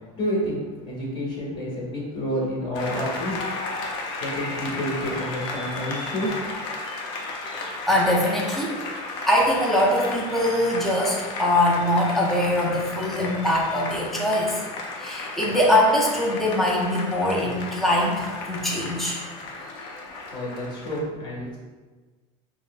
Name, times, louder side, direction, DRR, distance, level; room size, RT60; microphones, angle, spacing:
voice 1, 0.1-3.4 4.2-6.4 20.3-21.6, equal, 25° left, -5 dB, 1.2 m, -29 dB
Applause, 2.7-21.0, left 3 dB, 60° left, 0.6 m, -34 dB
voice 2, 7.9-8.7 9.3-14.6 15.0-19.2, left 1 dB, ahead, -4 dB, 0.5 m, -22 dB
5.4 x 2.0 x 2.4 m, 1.3 s
cardioid pair, 160°, 18 cm